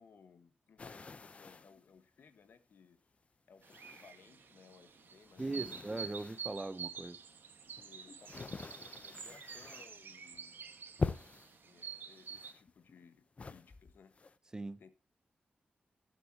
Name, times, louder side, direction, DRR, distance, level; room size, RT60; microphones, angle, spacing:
voice 1, 0.0-3.0 3.5-5.8 7.8-10.6 11.6-14.2 14.8-14.9, left 6 dB, 75° left, 1.3 m, -61 dB
sound 1, 0.8-1.8 2.5-2.6 3.6-4.5 4.8-6.6 7.3-10.0 10.3-10.6 11.0-11.6 12.2-13.1 13.4-14.4, left 4 dB, 35° left, 0.7 m, -44 dB
sound 2, 3.6-12.5, right 7 dB, 75° right, 1.4 m, -48 dB
voice 2, 5.4-7.2 14.5-14.8, right 2 dB, 20° right, 0.7 m, -40 dB
18.5 x 8.2 x 2.8 m
wide cardioid pair, 135°, 4 cm